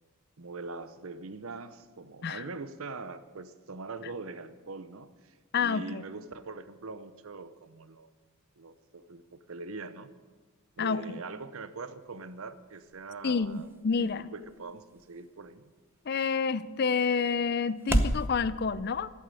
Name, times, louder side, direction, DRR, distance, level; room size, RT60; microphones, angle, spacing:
voice 1, 0.4-8.1 8.6-10.1 10.8-13.7 14.0-15.6, right 3 dB, 70° right, 13 dB, 0.8 m, -42 dB
voice 2, 5.5-6.0 10.8-11.2 13.2-14.3 16.1-19.1, left 5 dB, 45° left, 17 dB, 0.5 m, -29 dB
sound 1, 12.0-18.3, right 1 dB, 10° right, 0.7 m, -36 dB
11.5 x 8.4 x 9.9 m, 1.4 s
head